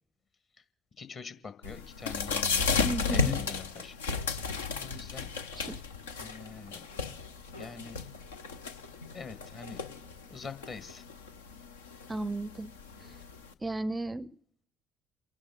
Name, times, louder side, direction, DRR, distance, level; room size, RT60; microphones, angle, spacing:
voice 1, 1.0-2.8 3.1-3.9 4.8-5.3 6.2-6.8 7.6-8.0 9.1-9.8 10.3-11.0, left 5 dB, 45° left, 11 dB, 1.7 m, -44 dB
sound 1, 1.6-13.5, left 5 dB, 80° left, 0.7 m, -34 dB
voice 2, 2.8-3.4 5.5-5.8 12.1-12.7 13.0-13.2 13.6-14.4, right 2 dB, 20° right, 21 dB, 0.5 m, -35 dB
29.5 x 11.0 x 3.8 m, 0.71 s
figure-of-eight pair, 50°, 0 cm